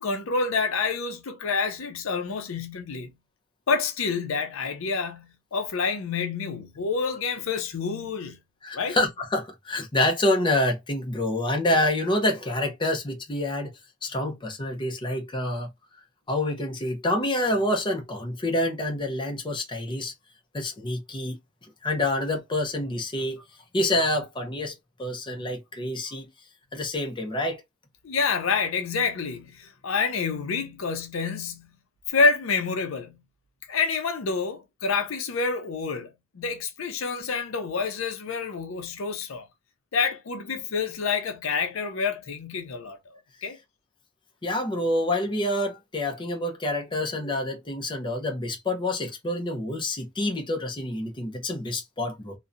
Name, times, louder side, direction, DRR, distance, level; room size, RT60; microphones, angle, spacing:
voice 1, 0.0-3.1 3.7-8.4 8.7-9.0 28.0-31.7 32.1-33.2 33.7-39.5 39.9-43.0 43.4-43.6, left 4 dB, 85° left, 0.5 m, -28 dB
voice 2, 8.6-13.7 14.0-15.7 16.3-20.1 20.5-21.4 21.8-23.4 23.7-24.7 25.0-26.3 26.7-27.6 44.4-52.3, left 1 dB, 25° left, 0.6 m, -27 dB
2.7 x 2.1 x 2.5 m
head